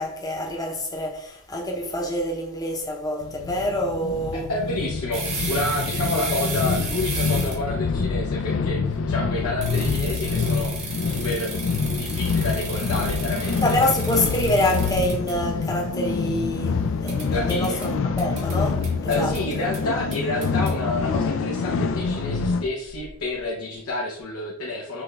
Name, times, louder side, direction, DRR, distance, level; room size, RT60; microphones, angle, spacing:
voice 1, 0.0-4.5 13.6-17.9 18.2-19.3, left 1 dB, 15° left, 0.7 m, -26 dB
sound 1, 3.2-22.7, left 4 dB, 60° left, 0.3 m, -26 dB
voice 2, 4.5-13.6 17.3-17.8 19.1-25.0, left 2 dB, 80° left, 0.7 m, -29 dB
sound 2, 5.1-7.7 9.6-15.3 17.1-17.9 18.2-18.6 18.8-19.4 19.7-19.8 20.1-20.7, right 4 dB, 30° right, 0.9 m, -34 dB
6.0 x 2.3 x 3.2 m
head